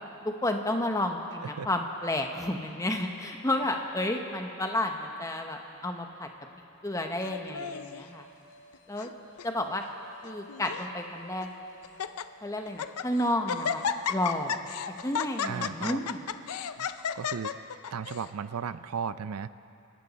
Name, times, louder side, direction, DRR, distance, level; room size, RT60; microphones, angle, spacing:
voice 1, 0.4-6.3 6.8-8.3 8.9-9.1 9.4-9.8 10.2-11.5 12.4-13.8 14.1-14.6 15.0-16.2, left 1 dB, 15° left, 4 dB, 1.0 m, -31 dB
Laughter, 7.2-8.0 8.7-9.1 9.4-9.5 10.2-10.9 11.4-11.5 11.8-12.2 12.7-13.1 13.5-18.3, left 7 dB, 90° left, 0.5 m, -33 dB
sound 1, 7.8-17.0, left 1 dB, 60° left, 3.3 m, -55 dB
voice 2, 15.4-16.0 16.8-16.9 17.1-17.5 17.9-19.5, right 6 dB, 85° right, 14 dB, 0.5 m, -35 dB
28.5 x 12.0 x 4.2 m, 2.7 s
head